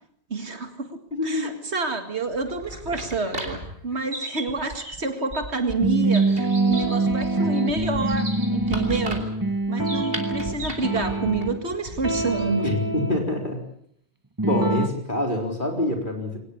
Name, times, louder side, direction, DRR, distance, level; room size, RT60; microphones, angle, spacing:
voice 1, 0.3-0.9 1.2-9.3 9.7-12.7, right 3 dB, 80° right, 7 dB, 2.3 m, -28 dB
voice 2, 1.1-1.6 12.6-13.6 14.4-16.4, left 1 dB, 50° left, 2 dB, 4.3 m, -26 dB
sound 1, 2.3-12.6, right 1 dB, 60° right, 3.8 m, -36 dB
sound 2, 5.8-11.7 12.0-13.2 14.4-14.9, right 2 dB, 20° right, 1.3 m, -25 dB
23.0 x 19.0 x 8.6 m, 0.68 s
omnidirectional pair, 1.1 m